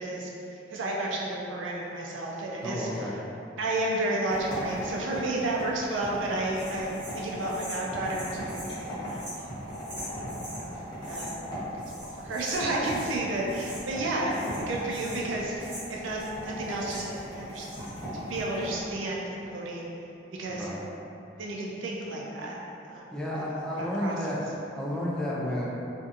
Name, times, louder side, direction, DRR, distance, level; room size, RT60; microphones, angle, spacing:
voice 1, 0.0-2.9 3.6-9.3 10.2-10.7 11.1-17.7 18.2-19.9 20.4-20.7 21.4-22.6 22.9-23.1 23.7-24.2, right 2 dB, 85° right, -3 dB, 0.5 m, -32 dB
voice 2, 2.6-3.1 20.5-20.8 23.1-25.7, left 1 dB, 5° left, -6 dB, 0.3 m, -32 dB
sound 1, 4.3-18.9, equal, 20° left, 0.9 m, -38 dB
sound 2, 6.5-10.6 11.0-11.5 11.8-13.2 13.5-14.0 14.3-17.2 17.5-18.1, equal, 30° right, 1.4 m, -44 dB
2.6 x 2.5 x 2.4 m, 2.8 s
head